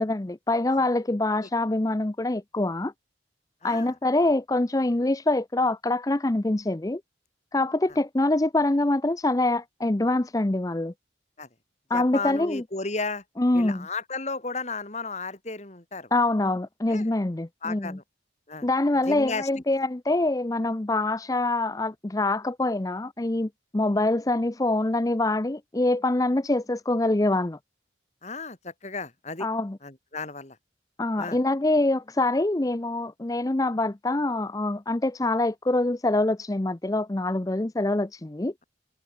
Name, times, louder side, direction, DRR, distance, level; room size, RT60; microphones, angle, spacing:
voice 1, 0.0-2.9 3.6-7.0 7.5-10.9 11.9-12.6 13.4-13.9 16.1-18.0 18.6-27.6 29.4-29.8 31.0-38.5, left 2 dB, 20° left, 0.6 m, -25 dB
voice 2, 3.6-3.9 11.4-11.5 11.9-13.2 13.5-16.1 16.9-17.1 17.6-18.0 18.5-18.7 19.1-19.5 28.2-29.5 29.8-30.6 31.2-31.4, left 3 dB, 40° left, 2.5 m, -34 dB
head